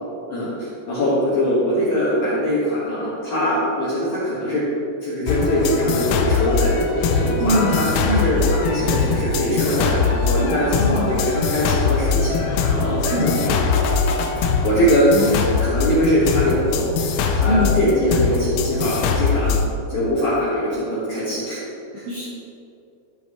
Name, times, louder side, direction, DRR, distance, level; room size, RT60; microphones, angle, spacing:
voice 1, 0.3-4.6 5.0-13.9 14.6-16.8 17.3-19.6 19.9-21.6 21.9-22.1, equal, 60° left, -11 dB, 2.1 m, -22 dB
sound 1, 5.3-19.7, left 5 dB, 90° left, 3.4 m, -22 dB
voice 2, 7.4-7.8 8.0-8.3 10.8-11.1 13.1-13.4 15.1-15.4 17.4-17.7 22.1-22.3, left 1 dB, 75° right, -7 dB, 2.2 m, -22 dB
14.5 x 5.4 x 3.1 m, 2.7 s
omnidirectional pair, 6.0 m